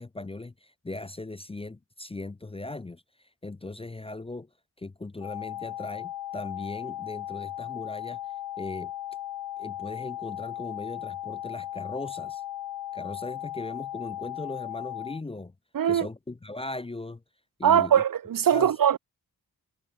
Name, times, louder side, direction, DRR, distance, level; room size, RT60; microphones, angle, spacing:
voice 1, 0.0-3.0 3.4-4.5 4.8-8.2 8.6-8.9 9.6-12.4 12.9-15.5 15.8-17.2 17.6-18.0 18.5-18.7, left 2 dB, 15° left, 0.5 m, -38 dB
sound 1, 5.2-15.2, left 12 dB, 85° left, 0.5 m, -37 dB
voice 2, 15.7-16.1 17.6-19.0, right 9 dB, 65° right, 0.7 m, -21 dB
wide cardioid pair, 120°, 36 cm